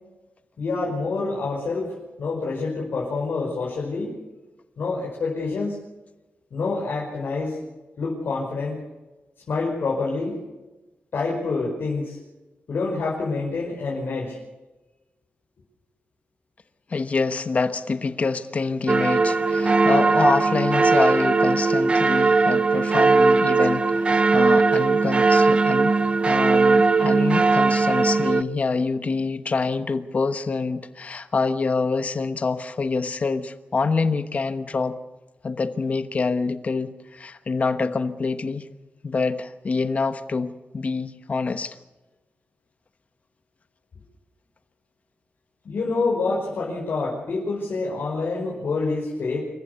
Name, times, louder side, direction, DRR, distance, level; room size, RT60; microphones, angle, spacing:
voice 1, 0.6-1.9 2.2-4.1 4.8-5.8 6.5-7.6 8.0-8.8 9.5-10.4 11.1-12.2 12.7-14.4 45.6-49.4, left 3 dB, 70° left, 5.4 m, -27 dB
voice 2, 16.9-25.9 26.2-34.9 35.4-38.6 39.0-41.7, left 4 dB, 40° left, 1.1 m, -26 dB
sound 1, 18.9-28.4, right 3 dB, 30° right, 0.7 m, -19 dB
27.0 x 15.0 x 7.0 m
wide cardioid pair, 170°, 4 cm